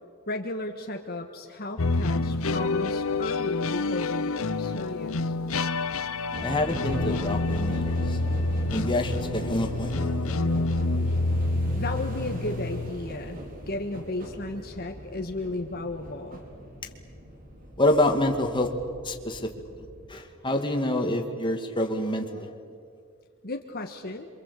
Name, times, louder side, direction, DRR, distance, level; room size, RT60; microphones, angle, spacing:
voice 1, 0.3-5.4 11.8-13.4 13.7-16.4 23.4-24.3, left 2 dB, 45° left, 4 dB, 1.6 m, -34 dB
sound 1, 1.8-12.9, left 3 dB, 70° left, 0.9 m, -28 dB
sound 2, 6.3-20.1, equal, 40° right, 4.7 m, -39 dB
voice 2, 6.4-8.2 8.7-10.1 17.8-18.7 19.0-19.8 20.1-22.5, left 1 dB, 20° left, 3 dB, 2.4 m, -27 dB
28.0 x 25.5 x 8.5 m, 2.2 s
head